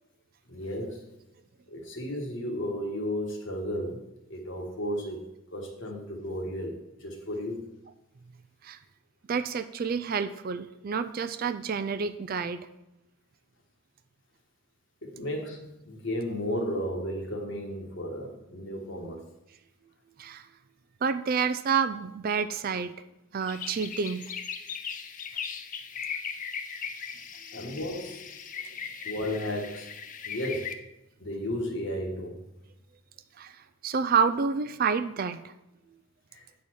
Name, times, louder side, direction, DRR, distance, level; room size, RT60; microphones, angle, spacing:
voice 1, 0.5-1.0 1.7-7.7 15.0-19.2 27.5-28.2 29.0-29.9 30.2-30.8 31.2-32.4 36.3-36.4, equal, 55° left, 1 dB, 1.5 m, -34 dB
voice 2, 9.3-12.7 20.2-20.5 21.0-22.9 23.3-24.3 27.5-27.6 33.4-35.5, right 6 dB, 40° right, 10 dB, 0.3 m, -29 dB
sound 1, 23.4-30.7, left 7 dB, 35° left, 0.5 m, -38 dB
8.8 x 4.2 x 6.1 m, 0.92 s
head